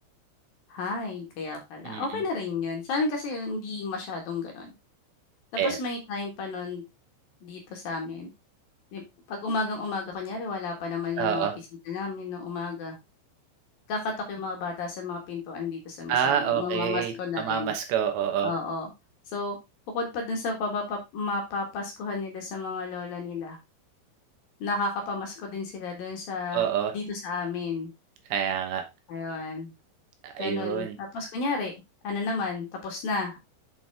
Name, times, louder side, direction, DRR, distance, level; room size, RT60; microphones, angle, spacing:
voice 1, 0.7-4.7 5.6-6.8 7.4-8.3 8.9-9.0 9.3-11.5 11.9-12.9 13.9-17.7 18.4-18.9 19.3-19.6 19.9-23.6 24.6-26.7 26.9-27.9 29.1-29.7 30.4-31.7 32.0-33.4, left 3 dB, 60° left, 2 dB, 2.8 m, -32 dB
voice 2, 11.2-11.5 16.1-18.5 26.5-26.9 28.3-28.8 30.2-31.0, right 9 dB, 75° right, 5 dB, 3.1 m, -27 dB
7.8 x 6.1 x 3.5 m, 0.22 s
omnidirectional pair, 5.5 m